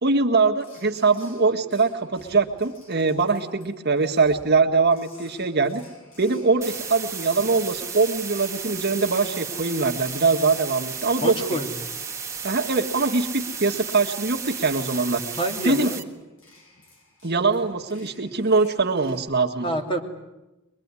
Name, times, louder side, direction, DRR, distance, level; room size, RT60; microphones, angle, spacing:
voice 1, 0.0-5.8 6.2-11.6 12.4-15.2 15.6-16.0 17.2-19.7, right 4 dB, 50° right, 4 dB, 1.7 m, -22 dB
sound 1, 0.6-19.2, left 2 dB, 85° left, 7.9 m, -52 dB
sound 2, 6.6-16.0, right 6 dB, 15° right, 1.6 m, -34 dB
voice 2, 11.2-11.7 15.3-16.0 19.6-20.0, right 1 dB, 25° left, 2 dB, 2.9 m, -27 dB
23.0 x 22.5 x 9.7 m, 1.0 s
head